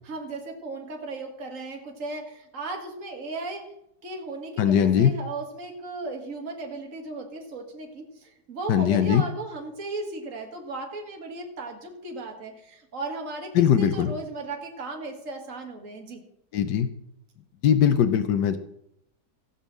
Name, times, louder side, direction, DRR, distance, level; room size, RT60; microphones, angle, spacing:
voice 1, 0.0-3.7 4.0-16.2, right 2 dB, 50° right, 1 dB, 2.2 m, -36 dB
voice 2, 4.6-5.1 8.7-9.2 13.5-14.1 16.5-16.9 17.6-18.6, left 9 dB, 85° left, 9 dB, 1.4 m, -20 dB
15.5 x 5.4 x 7.5 m, 0.77 s
omnidirectional pair, 1.8 m